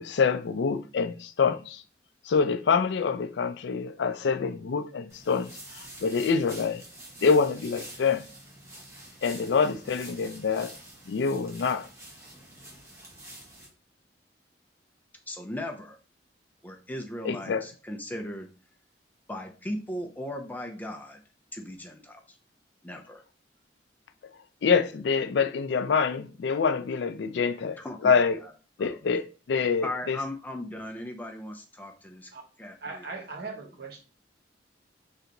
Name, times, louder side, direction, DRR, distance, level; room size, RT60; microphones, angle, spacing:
voice 1, 0.0-1.8 2.3-5.5 5.7-6.8 7.2-8.3 9.2-10.7 11.1-11.9 17.2-17.6 24.6-28.4 28.8-29.2 29.5-30.2, left 5 dB, 70° left, 0.4 m, -26 dB
sound 1, 5.1-13.7, right 1 dB, 15° right, 1.2 m, -47 dB
voice 2, 15.3-16.0 16.6-18.5 19.3-21.2 21.5-22.4 22.8-23.2 27.8-28.5 28.8-29.0 29.8-32.3 32.6-33.3, left 1 dB, 10° left, 0.5 m, -38 dB
voice 3, 32.8-34.0, right 4 dB, 60° right, 1.1 m, -39 dB
3.3 x 2.9 x 3.8 m
head